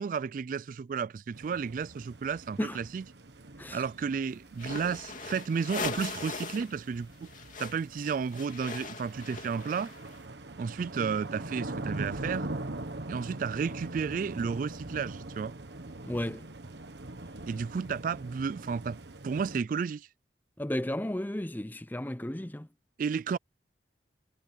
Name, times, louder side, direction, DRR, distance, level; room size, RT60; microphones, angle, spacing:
voice 1, 0.0-3.0 3.7-7.3 7.6-9.9 10.6-12.5 13.1-15.6 17.5-19.0 19.2-20.1 23.0-23.4, right 6 dB, 50° right, 0.3 m, -32 dB
sound 1, 1.3-19.6, right 2 dB, 75° right, 1.4 m, -42 dB
sound 2, 4.5-6.7 7.0-10.2, left 4 dB, 45° left, 2.7 m, -40 dB
voice 2, 16.1-16.5 20.6-22.7, left 1 dB, 10° left, 0.6 m, -33 dB
head